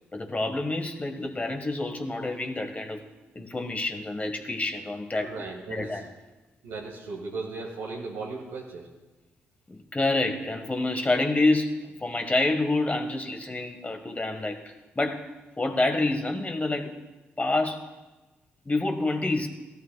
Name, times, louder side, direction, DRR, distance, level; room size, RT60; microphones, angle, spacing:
voice 1, 0.1-3.0 3.3-5.3 5.7-6.0 9.7-16.9 17.4-17.9 18.6-19.5, left 2 dB, 25° left, 5 dB, 1.4 m, -28 dB
voice 2, 5.2-6.0 6.6-8.9, right 3 dB, 85° right, -4 dB, 1.7 m, -36 dB
16.0 x 12.5 x 2.3 m, 1.1 s
hypercardioid pair, 40°, 5 cm